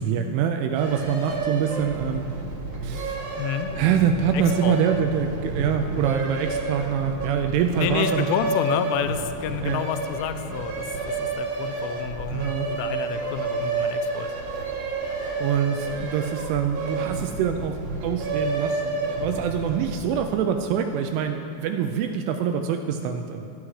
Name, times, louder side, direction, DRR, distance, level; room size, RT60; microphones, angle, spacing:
voice 1, 0.0-2.3 2.8-3.2 3.8-8.3 9.6-9.8 12.3-12.7 15.4-23.5, right 8 dB, 85° right, 5 dB, 2.8 m, -25 dB
sound 1, 0.7-20.2, right 3 dB, 60° right, 1.8 m, -30 dB
voice 2, 3.4-3.7 4.3-4.8 7.8-14.3, left 9 dB, 85° left, 9 dB, 3.0 m, -29 dB
15.0 x 12.5 x 3.2 m, 2.8 s
omnidirectional pair, 5.7 m